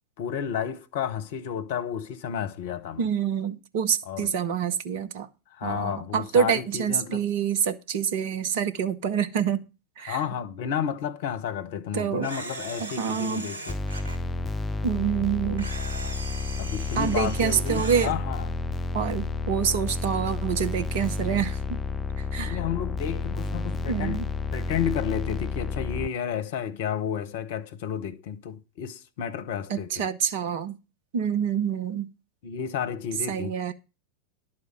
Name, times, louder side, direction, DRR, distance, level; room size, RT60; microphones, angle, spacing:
voice 1, 0.2-3.0 4.1-4.3 5.5-7.2 10.1-13.8 16.6-18.5 22.4-24.2 24.5-30.1 32.4-33.5, left 8 dB, 50° left, 0.9 m, -31 dB
voice 2, 3.0-5.3 5.6-9.6 10.0-10.2 11.9-12.3 12.8-13.5 14.8-15.7 16.9-18.1 18.9-21.8 22.3-22.6 23.9-24.3 29.7-30.8 31.1-32.1 33.3-33.7, right 7 dB, 50° right, 1.0 m, -27 dB
Camera, 12.2-14.2 15.6-18.1, right 2 dB, 65° right, 3.2 m, -38 dB
sound 1, 13.7-26.1, left 3 dB, 20° left, 0.4 m, -31 dB
11.0 x 4.4 x 7.7 m
figure-of-eight pair, 90°, 0 cm